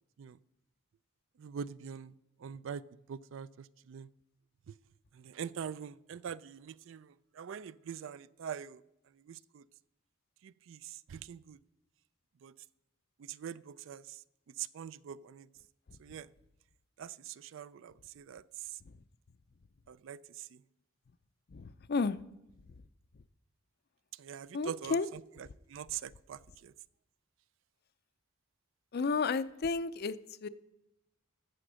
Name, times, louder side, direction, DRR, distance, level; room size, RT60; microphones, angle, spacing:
voice 1, 1.4-2.1 2.4-2.8 3.1-4.1 5.1-8.8 9.3-9.6 10.4-11.6 12.4-12.5 13.2-14.2 14.6-15.5 16.0-16.3 17.0-18.7 19.9-20.6 24.2-26.7, right 8 dB, 65° right, 0.3 m, -44 dB
voice 2, 21.5-22.2 24.5-25.1 28.9-30.5, left 4 dB, 50° left, 0.4 m, -32 dB
13.0 x 7.7 x 6.2 m
head